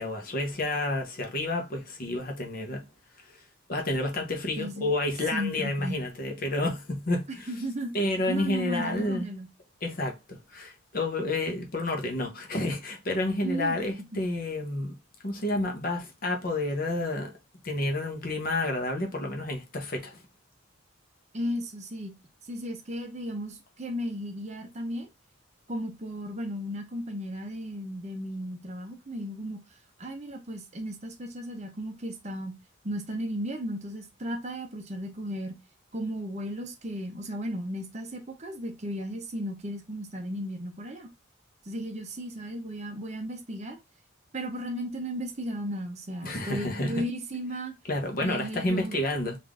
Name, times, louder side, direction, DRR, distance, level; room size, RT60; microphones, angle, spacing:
voice 1, 0.0-2.8 3.3-3.4 3.7-7.5 7.9-9.2 9.8-15.0 15.2-17.3 17.6-20.2 46.2-47.0 47.9-49.4, left 2 dB, 45° left, 0.8 m, -30 dB
voice 2, 4.6-4.9 5.3-6.0 7.5-9.5 13.4-13.8 21.3-22.1 22.5-25.1 25.7-29.6 30.0-32.6 32.8-35.5 35.9-41.1 41.7-43.8 44.3-47.7 48.2-49.0, equal, 35° right, 0.7 m, -35 dB
3.5 x 2.6 x 3.5 m
head